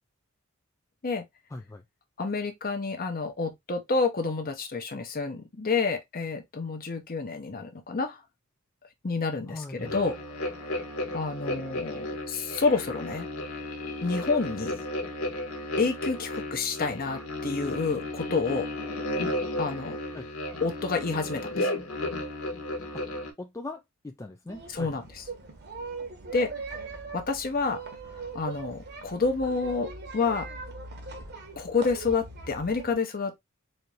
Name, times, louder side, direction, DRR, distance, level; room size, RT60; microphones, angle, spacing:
voice 1, 1.5-1.8 9.5-10.0 20.1-20.3 22.9-23.0 23.4-25.0, left 2 dB, 15° left, 0.3 m, -40 dB
voice 2, 2.2-8.2 9.0-10.8 11.1-13.3 14.0-14.8 15.8-18.7 19.6-20.0 20.6-21.7 24.7-25.2 26.3-26.5 27.1-27.8 28.3-30.5 31.6-33.3, left 4 dB, 45° left, 0.8 m, -29 dB
sound 1, 9.8-23.3, left 1 dB, 75° left, 1.2 m, -34 dB
sound 2, 24.5-33.0, right 3 dB, 50° right, 1.1 m, -41 dB
4.1 x 2.6 x 3.2 m
head